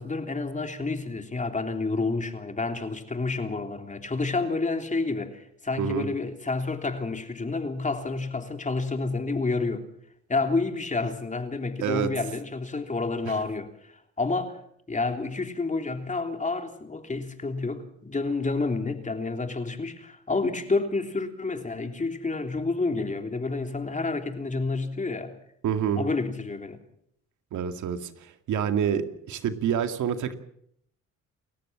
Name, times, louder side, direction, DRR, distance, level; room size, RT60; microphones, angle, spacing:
voice 1, 0.0-9.8 10.3-14.6 14.9-25.3 25.9-26.8, left 3 dB, 25° left, 3.4 m, -29 dB
voice 2, 11.8-12.1 25.6-26.0 27.5-30.3, right 8 dB, 75° right, 2.2 m, -27 dB
29.5 x 14.5 x 7.5 m
cardioid pair, 90°, 30 cm